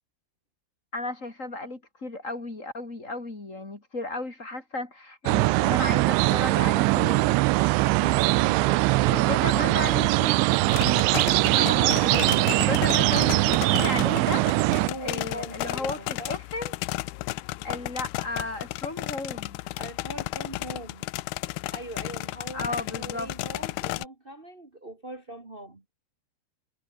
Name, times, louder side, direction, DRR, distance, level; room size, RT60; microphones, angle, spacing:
voice 1, 0.9-7.4 9.1-10.4 10.8-11.1 11.5-14.5 15.0-16.8 17.6-19.6 22.5-23.3, left 2 dB, 20° left, 3.0 m, -34 dB
sound 1, 5.3-14.9, right 22 dB, 90° right, 2.9 m, -22 dB
voice 2, 7.6-9.4 14.8-16.4 19.6-21.1 21.7-25.8, right 1 dB, 70° right, 0.5 m, -41 dB
sound 2, 10.7-24.1, left 19 dB, 80° left, 2.3 m, -34 dB
omnidirectional pair, 5.2 m